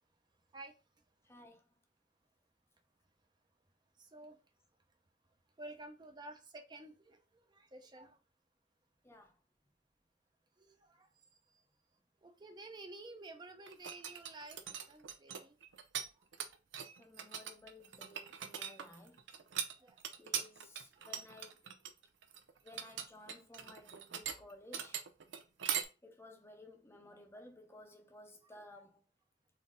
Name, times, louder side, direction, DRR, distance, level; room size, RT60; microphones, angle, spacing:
voice 1, 1.2-1.6 9.0-9.4 17.0-19.2 20.2-21.6 22.6-25.0 26.0-29.0, left 1 dB, 15° left, 0.7 m, -56 dB
voice 2, 4.0-4.4 5.6-8.2 10.6-11.1 11.5-11.6 12.2-15.6 16.1-16.3 19.8-20.0 21.0-21.1, right 2 dB, 25° right, 0.6 m, -52 dB
sound 1, 13.7-16.1 16.3-25.8, right 8 dB, 85° right, 0.6 m, -41 dB
4.1 x 2.7 x 3.7 m
head